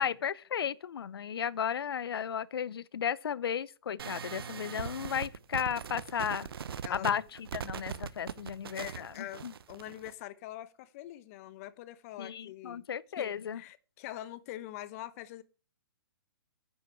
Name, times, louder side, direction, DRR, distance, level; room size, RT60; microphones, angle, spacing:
voice 1, 0.0-6.5 6.9-7.2 7.5-9.5 12.2-13.6, left 8 dB, 70° left, 0.7 m, -34 dB
sound 1, 4.0-10.1, right 7 dB, 70° right, 1.0 m, -40 dB
voice 2, 6.8-7.3 8.7-12.8 13.2-15.4, left 14 dB, 35° left, 0.9 m, -44 dB
10.0 x 8.1 x 5.8 m
hypercardioid pair, 140°, 13 cm